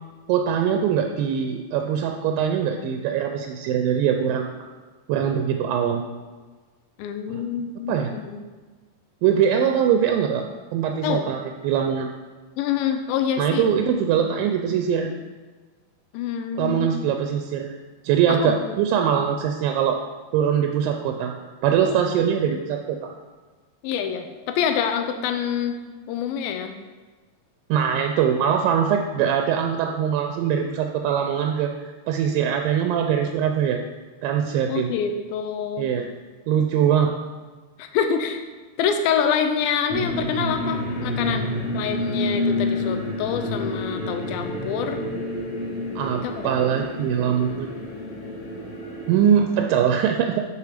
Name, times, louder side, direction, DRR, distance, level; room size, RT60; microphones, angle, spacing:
voice 1, 0.3-4.5 5.1-6.1 7.3-7.4 7.9-8.1 9.2-10.4 10.7-12.1 13.4-15.1 16.6-17.8 18.0-20.0 20.3-21.3 21.6-23.1 27.7-31.7 32.1-33.8 34.2-35.0 35.8-36.1 36.5-37.1 46.0-47.8 49.1-50.5, right 8 dB, 85° right, 4 dB, 2.3 m, -22 dB
voice 2, 7.0-8.4 11.0-11.3 12.6-14.0 16.1-16.9 18.3-18.8 23.8-25.8 26.1-26.8 34.6-35.9 37.8-38.4 38.8-45.0 46.2-46.7, left 7 dB, 90° left, 6 dB, 2.5 m, -26 dB
sound 1, 39.9-49.2, left 1 dB, 25° left, 2.0 m, -29 dB
8.3 x 4.8 x 5.0 m, 1.4 s
omnidirectional pair, 4.1 m